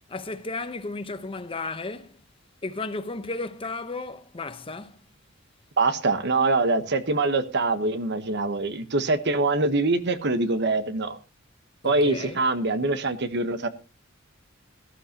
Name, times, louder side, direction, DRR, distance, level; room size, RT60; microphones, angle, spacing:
voice 1, 0.1-2.2 2.6-5.0 11.8-12.4, left 3 dB, 25° left, 0.9 m, -34 dB
voice 2, 5.8-11.2 11.8-13.7, right 3 dB, 55° right, 1.1 m, -24 dB
18.0 x 12.5 x 2.9 m
head